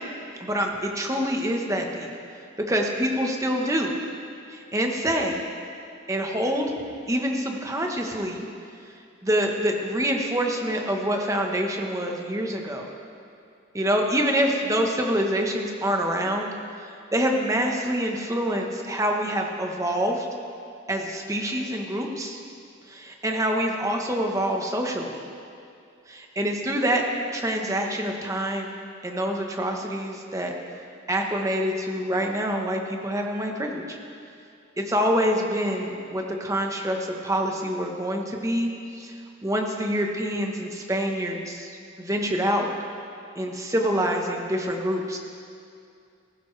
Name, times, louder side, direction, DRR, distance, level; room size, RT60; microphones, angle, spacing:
voice 1, 0.4-2.1 2.7-3.9 4.5-5.4 6.1-6.7 7.1-8.5 9.2-12.9 13.7-16.5 17.1-20.3 20.9-22.4 22.9-25.2 26.1-27.0 27.3-28.7 29.0-30.5 31.1-34.0 34.8-38.7 39.0-39.1 39.4-41.7 42.0-42.7 43.4-45.2, equal, 15° right, 2 dB, 1.1 m, -26 dB
16.0 x 14.5 x 3.3 m, 2.4 s
head